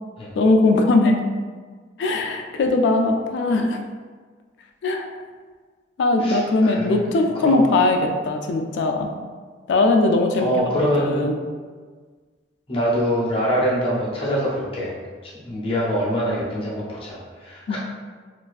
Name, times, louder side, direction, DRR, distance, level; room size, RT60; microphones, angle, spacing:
voice 1, 0.4-1.2 2.0-3.8 4.8-5.1 6.0-9.1 9.7-11.4 17.7-17.8, left 2 dB, 75° left, 4 dB, 0.3 m, -20 dB
voice 2, 6.2-7.0 7.3-7.6 10.4-11.2 12.7-15.0 15.2-17.8, equal, 30° left, -5 dB, 0.6 m, -24 dB
2.5 x 2.3 x 2.3 m, 1.5 s
head